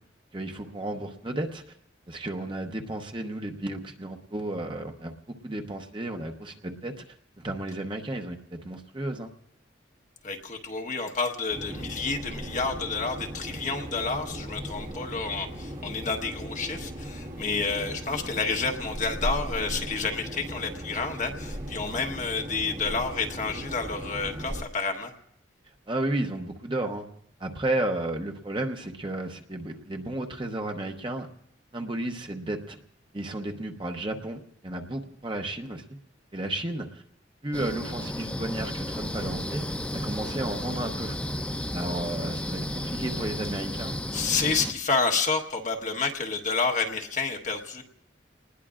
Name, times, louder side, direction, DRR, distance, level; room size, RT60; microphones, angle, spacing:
voice 1, 0.3-1.6 2.1-5.1 5.4-7.0 7.4-9.3 25.9-27.0 27.4-31.3 31.7-32.8 33.1-35.8 36.3-37.0 37.4-39.7 39.9-41.2 41.7-44.0, right 1 dB, 25° right, 4 dB, 0.9 m, -33 dB
voice 2, 10.2-25.1 44.1-47.8, left 4 dB, 40° left, 3 dB, 1.2 m, -29 dB
sound 1, 11.5-24.6, equal, 40° right, 1.7 m, -37 dB
sound 2, 37.5-44.7, left 1 dB, 5° left, 0.6 m, -33 dB
29.0 x 20.0 x 2.5 m, 0.71 s
head